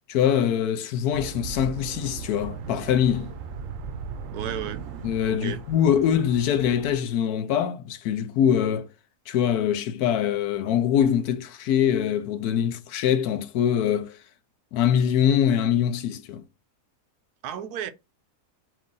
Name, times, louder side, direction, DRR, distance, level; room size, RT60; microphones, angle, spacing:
voice 1, 0.1-3.3 5.0-8.9 9.3-14.2 14.7-16.4, left 9 dB, 80° left, 1.1 m, -23 dB
sound 1, 1.1-6.9, right 6 dB, 65° right, 0.9 m, -38 dB
voice 2, 4.3-4.8 5.3-5.6 17.4-17.9, right 8 dB, 85° right, 1.1 m, -33 dB
4.7 x 2.5 x 3.7 m
omnidirectional pair, 1.6 m